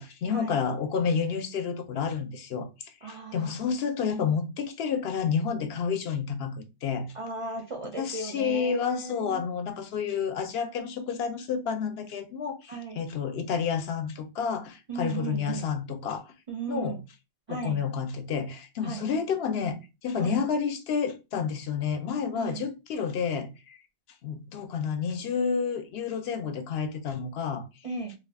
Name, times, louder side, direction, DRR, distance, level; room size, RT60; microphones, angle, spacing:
voice 1, 0.0-7.1 8.0-16.2 16.7-17.0 17.5-23.8 24.2-27.6, left 6 dB, 70° left, 0.8 m, -30 dB
voice 2, 3.0-3.5 7.1-9.4 12.7-13.0 14.9-15.7 16.5-17.0 17.5-17.8 18.8-19.1 20.2-20.4 22.4-22.7 27.8-28.1, right 4 dB, 50° right, 0.4 m, -36 dB
2.5 x 2.3 x 3.4 m
omnidirectional pair, 1.1 m